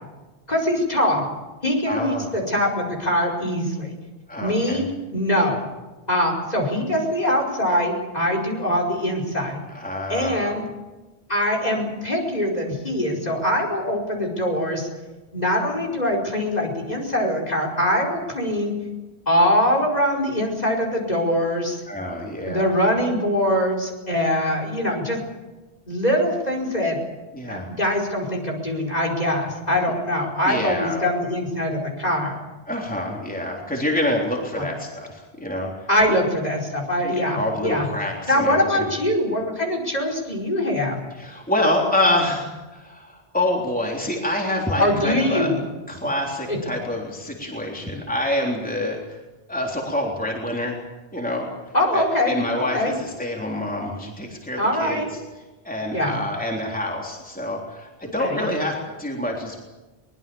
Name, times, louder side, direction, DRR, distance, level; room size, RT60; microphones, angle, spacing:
voice 1, 0.5-1.3 1.6-3.9 4.4-4.8 5.1-5.6 6.1-9.6 10.1-10.6 11.3-14.9 15.3-18.7 19.3-21.8 22.5-25.2 25.9-27.0 27.4-32.4 34.6-34.7 35.9-37.9 38.3-41.0 44.8-45.6 46.5-46.6 51.7-52.9 54.6-55.1 55.9-56.2 58.2-58.4, left 1 dB, 40° left, 1 dB, 5.1 m, -23 dB
voice 2, 1.9-2.3 4.3-4.9 9.7-10.6 21.9-22.8 27.3-27.7 30.5-31.1 32.7-36.2 37.0-38.9 41.2-45.5 45.9-49.0 49.5-50.8 51.1-51.5 51.9-55.0 55.6-59.6, left 1 dB, 10° left, -1 dB, 3.6 m, -26 dB
23.5 x 21.0 x 7.2 m, 1.1 s
omnidirectional pair, 1.1 m